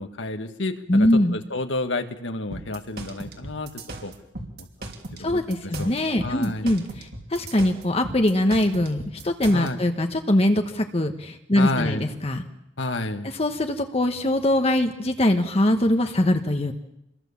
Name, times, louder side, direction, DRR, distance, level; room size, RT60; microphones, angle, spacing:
voice 1, 0.0-1.1 1.3-4.1 4.6-4.7 5.2-5.4 5.8-5.9 6.2-6.7 9.5-9.8 11.6-12.1 12.8-13.3, left 2 dB, 85° left, 7 dB, 1.8 m, -30 dB
voice 2, 0.9-1.4 5.2-12.4 13.2-16.7, left 1 dB, 30° left, 5 dB, 1.1 m, -22 dB
sound 1, 2.5-9.7, right 2 dB, 55° right, 3.2 m, -37 dB
27.0 x 22.0 x 7.2 m, 0.88 s
head